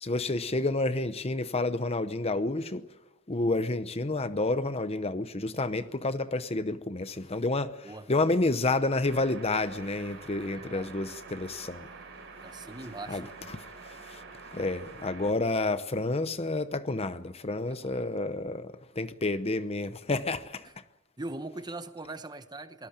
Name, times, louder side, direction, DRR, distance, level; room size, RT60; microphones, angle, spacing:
voice 1, 0.0-2.9 3.3-11.9 13.1-13.2 13.5-13.6 14.1-14.2 14.5-20.7, left 2 dB, 30° left, 0.8 m, -30 dB
sound 1, 9.0-15.3, right 4 dB, 55° right, 5.7 m, -47 dB
voice 2, 10.5-11.0 12.4-13.5 17.7-18.1 20.6-20.7 21.2-22.9, right 2 dB, 20° right, 1.0 m, -41 dB
24.5 x 19.0 x 8.8 m
head